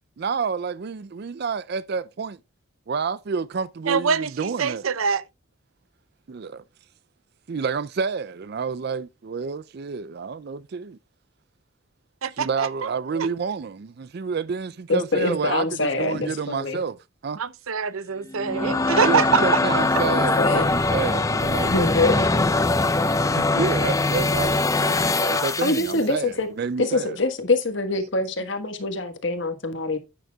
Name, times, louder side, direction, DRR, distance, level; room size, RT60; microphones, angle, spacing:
voice 1, 0.2-2.4 2.9-4.8 6.3-6.6 7.5-11.0 12.4-17.0 17.2-17.4 19.0-22.5 23.3-27.2, right 5 dB, 50° right, 0.4 m, -29 dB
voice 2, 3.9-5.2 12.2-13.3 17.4-19.8, right 6 dB, 90° right, 0.7 m, -25 dB
voice 3, 14.9-16.8 20.0-20.7 21.6-22.2 23.0-23.2 25.6-26.5 26.8-30.0, left 2 dB, 60° left, 1.4 m, -25 dB
sound 1, 18.3-26.0, left 2 dB, 15° left, 0.5 m, -22 dB
11.0 x 9.3 x 2.3 m
head